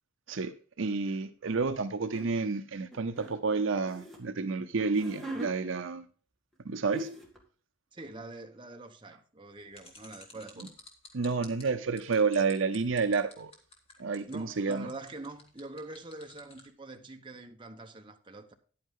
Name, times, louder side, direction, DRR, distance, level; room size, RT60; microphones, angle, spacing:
voice 1, 0.8-6.1 6.6-7.1 11.1-13.5 14.0-14.9, right 4 dB, 65° right, 0.6 m, -30 dB
sound 1, 2.1-2.3 2.9-4.2 4.8-5.5 6.5-6.6 6.9-7.4, equal, ahead, 1.9 m, -41 dB
voice 2, 7.9-10.8 14.3-18.5, right 2 dB, 25° right, 1.0 m, -45 dB
sound 2, 9.7-16.7, left 3 dB, 25° left, 1.7 m, -52 dB
10.5 x 8.7 x 3.7 m
head